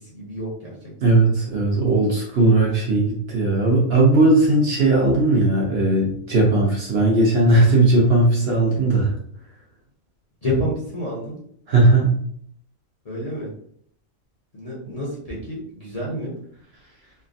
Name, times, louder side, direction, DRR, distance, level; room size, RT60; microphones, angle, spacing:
voice 1, 0.1-0.9 10.4-11.4 13.0-13.5 14.5-16.3, equal, 35° left, -6 dB, 0.7 m, -28 dB
voice 2, 1.0-9.1 11.7-12.1, right 2 dB, 55° right, -2 dB, 0.8 m, -17 dB
3.3 x 2.1 x 2.4 m, 0.64 s
omnidirectional pair, 1.4 m